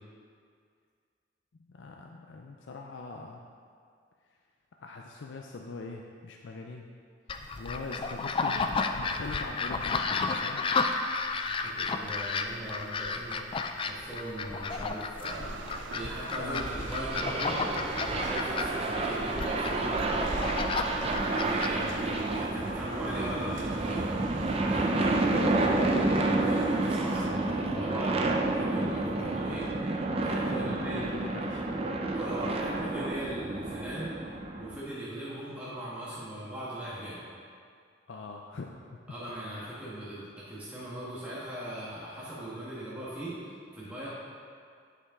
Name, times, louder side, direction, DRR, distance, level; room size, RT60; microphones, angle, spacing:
voice 1, 1.7-3.4 4.8-6.9 7.6-10.6 16.4-16.7 30.5-31.6 38.1-39.0, left 3 dB, 85° left, 1 dB, 0.5 m, -42 dB
sound 1, 7.3-22.5, left 4 dB, 30° left, 0.3 m, -32 dB
voice 2, 11.5-13.4 13.8-15.6 15.9-20.5 20.9-24.0 24.7-31.1 32.1-34.1 34.6-37.2 39.1-44.1, right 1 dB, 10° right, -10 dB, 1.4 m, -39 dB
sound 2, 15.2-27.4, right 4 dB, 80° right, 0.4 m, -46 dB
sound 3, 16.6-34.8, right 2 dB, 30° right, 0.5 m, -30 dB
9.7 x 5.6 x 3.7 m, 2.2 s
head